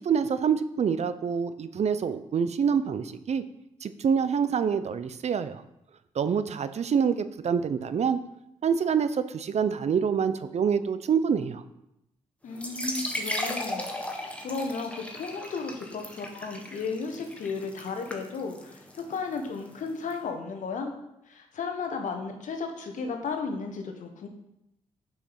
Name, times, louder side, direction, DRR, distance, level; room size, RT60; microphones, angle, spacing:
voice 1, 0.0-3.4 3.8-5.6 6.1-8.2 8.6-11.6, right 7 dB, 55° right, 12 dB, 0.6 m, -26 dB
voice 2, 12.4-13.8 14.1-20.9 21.3-24.3, left 4 dB, 70° left, 4 dB, 1.4 m, -34 dB
sound 1, 12.5-20.1, left 1 dB, 10° left, 1.5 m, -37 dB
6.4 x 5.8 x 5.9 m, 0.85 s
supercardioid pair, 50°, 13 cm